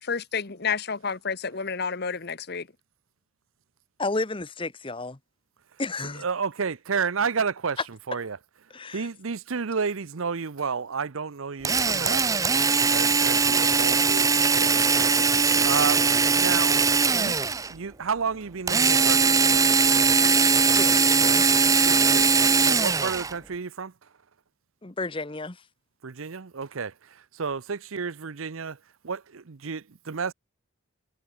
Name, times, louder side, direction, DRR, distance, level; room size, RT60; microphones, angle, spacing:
voice 1, 0.0-2.7, left 5 dB, 50° left, 1.2 m, -30 dB
voice 2, 4.0-5.2 5.8-6.2 8.7-9.1 20.8-21.4 24.8-25.6, left 3 dB, 25° left, 0.9 m, -32 dB
voice 3, 6.1-8.4 8.9-12.4 12.9-16.8 17.1-17.4 17.7-19.7 21.8-22.3 22.6-23.9 26.0-28.8 29.0-30.3, right 5 dB, 75° right, 0.7 m, -31 dB
Drill, 11.6-17.7 18.7-23.3, right 5 dB, 15° right, 0.6 m, -21 dB
head